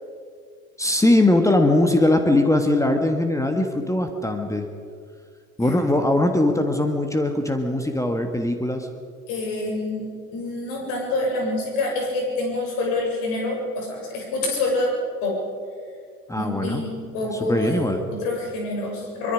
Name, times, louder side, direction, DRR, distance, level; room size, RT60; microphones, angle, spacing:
voice 1, 0.8-4.7 5.6-8.9 16.3-16.8 17.3-18.0, left 1 dB, 5° left, 5 dB, 1.5 m, -21 dB
voice 2, 9.3-10.0 10.3-14.9 15.2-15.4 16.3-19.3, left 2 dB, 50° left, 0 dB, 7.2 m, -27 dB
23.5 x 22.5 x 5.1 m, 2.2 s
figure-of-eight pair, 80°, 47 cm